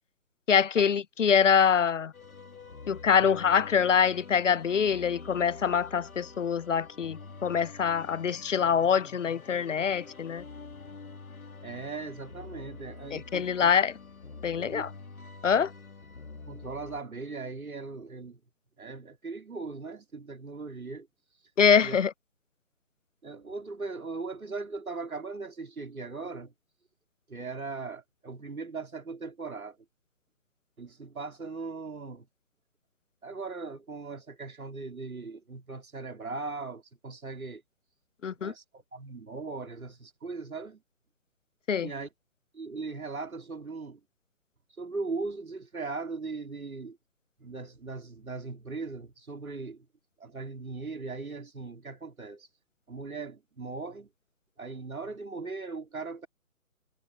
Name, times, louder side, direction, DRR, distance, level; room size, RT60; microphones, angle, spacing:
voice 1, 0.5-2.1 2.9-10.4 13.1-13.9 14.4-14.9 15.4-15.7 21.6-22.1 38.2-38.5 41.7-41.9, left 7 dB, 60° left, 0.6 m, -24 dB
sound 1, 2.1-17.0, left 4 dB, 75° left, 1.9 m, -47 dB
voice 2, 11.6-13.7 14.5-14.9 16.5-18.4 18.8-21.1 21.8-22.0 23.2-26.5 27.3-29.8 30.8-32.3 33.2-37.6 38.4-40.8 41.8-42.1 42.5-44.0 44.8-47.0 47.4-49.9 50.2-52.5 52.9-54.1 54.6-56.3, right 4 dB, 75° right, 2.8 m, -39 dB
figure-of-eight pair, 145°, 43 cm